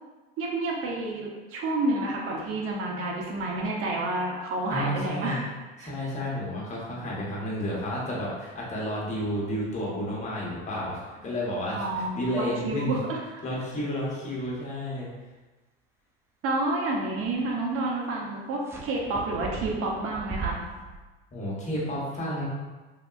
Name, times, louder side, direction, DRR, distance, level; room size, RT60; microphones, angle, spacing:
voice 1, 0.4-5.5 5.8-5.9 11.7-13.4 16.4-20.5, right 2 dB, 50° right, -1 dB, 0.8 m, -29 dB
voice 2, 4.7-5.4 5.8-12.9 13.4-15.1 21.3-22.5, equal, 25° left, -5 dB, 1.1 m, -31 dB
sound 1, 18.6-21.0, right 4 dB, 10° right, 0.3 m, -38 dB
3.3 x 2.6 x 2.4 m, 1.2 s
supercardioid pair, 100°, 29 cm